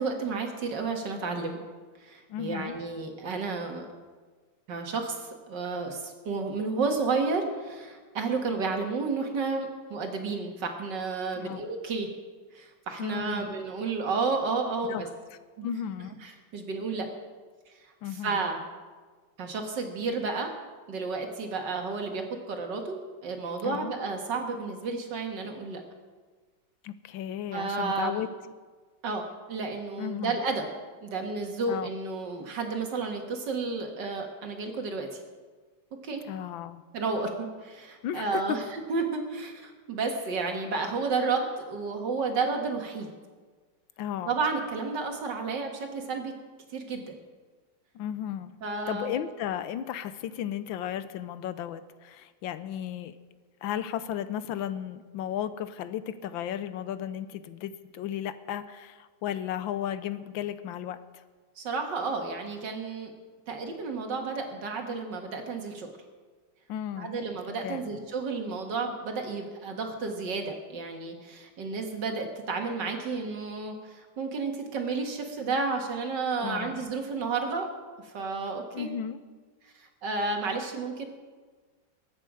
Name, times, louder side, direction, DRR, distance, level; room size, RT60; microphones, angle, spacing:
voice 1, 0.0-1.6 2.0-3.9 4.7-12.1 12.5-15.1 15.6-15.7 16.2-17.1 18.2-18.6 19.4-20.5 20.9-25.8 27.5-28.2 29.0-29.2 29.5-30.7 31.0-35.2 36.0-36.2 36.9-43.1 44.3-46.3 46.7-47.2 48.6-49.1 61.6-63.1 63.5-65.9 67.0-77.7 78.0-78.9 79.8-81.1, right 4 dB, 65° right, 3 dB, 2.3 m, -31 dB
voice 2, 2.3-2.7 11.4-11.6 13.0-13.6 14.9-15.0 15.6-16.1 18.0-18.5 23.6-23.9 26.8-28.3 30.0-30.4 31.7-31.9 36.2-36.8 38.0-38.4 44.0-44.3 47.9-48.5 48.9-53.1 53.6-61.0 66.7-67.1 67.6-67.8 76.4-76.8 78.7-79.2, left 10 dB, 85° left, 13 dB, 1.5 m, -34 dB
21.5 x 8.9 x 5.0 m, 1.4 s
omnidirectional pair, 2.1 m